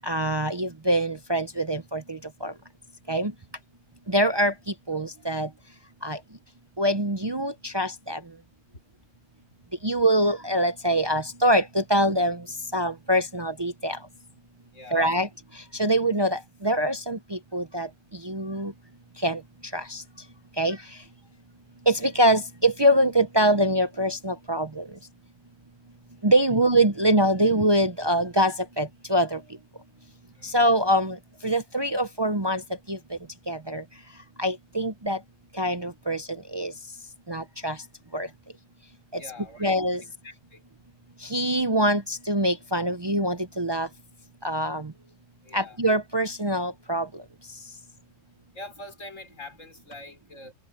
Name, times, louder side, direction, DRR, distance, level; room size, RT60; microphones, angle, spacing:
voice 1, 0.1-2.5 3.1-3.3 4.1-4.5 4.9-5.5 6.0-6.2 6.8-8.2 9.8-12.4 12.7-14.0 14.9-15.3 15.8-17.9 18.2-18.7 19.2-19.4 19.7-20.0 20.6-20.8 21.9-24.8 26.2-29.4 30.5-31.2 31.4-32.6 32.9-33.0 33.5-33.8 34.4-35.2 35.6-36.2 36.5-36.7 37.3-37.8 38.1-38.3 39.6-40.0 41.3-43.9 44.4-44.9 45.5-47.1, right 1 dB, 25° right, 0.6 m, -24 dB
voice 2, 14.7-15.3 30.3-30.6 39.1-39.7 40.2-40.6 45.4-45.8 48.5-50.5, left 2 dB, 90° left, 5.3 m, -44 dB
open air
omnidirectional pair, 1.3 m